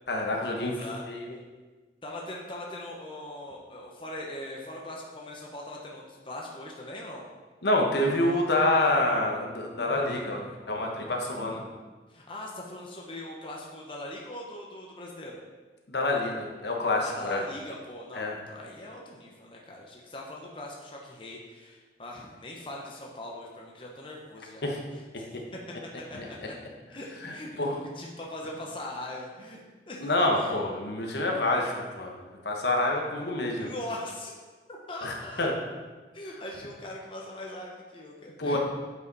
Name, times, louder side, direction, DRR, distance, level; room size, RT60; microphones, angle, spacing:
voice 1, 0.1-1.4 7.6-10.4 10.7-11.6 15.9-17.4 18.1-18.3 24.6-24.8 26.1-26.2 27.2-27.8 30.0-32.2 32.4-33.7 35.0-35.5 38.4-38.6, left 2 dB, 70° left, 0 dB, 1.1 m, -27 dB
voice 2, 0.6-1.1 2.0-7.3 12.1-15.4 17.0-24.6 25.2-25.4 26.0-26.5 26.9-27.5 28.0-29.6 29.9-30.1 30.4-30.5 33.6-34.3 34.9-35.5 36.1-38.6, left 1 dB, 30° left, -2 dB, 0.8 m, -41 dB
8.4 x 4.9 x 4.1 m, 1.3 s
head